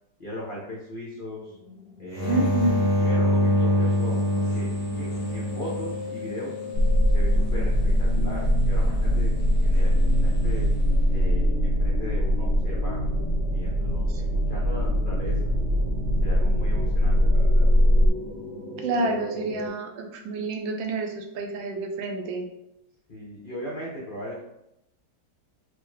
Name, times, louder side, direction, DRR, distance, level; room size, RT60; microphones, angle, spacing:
voice 1, 0.2-1.6 2.0-2.6 3.0-4.7 4.9-6.6 7.1-9.3 9.6-10.7 11.1-13.2 13.5-15.5 16.2-17.7 23.1-24.4, equal, 80° left, -6 dB, 0.4 m, -38 dB
sound 1, 1.5-19.7, left 3 dB, 50° right, 0.6 m, -39 dB
sound 2, 2.1-6.8 10.0-10.6, equal, 60° left, 1.4 m, -25 dB
voice 2, 2.3-2.8 18.8-22.5, right 2 dB, 85° right, 3 dB, 1.3 m, -28 dB
sound 3, 6.7-18.1, equal, 65° right, 1.0 m, -22 dB
4.5 x 2.1 x 3.1 m, 0.85 s
omnidirectional pair, 2.1 m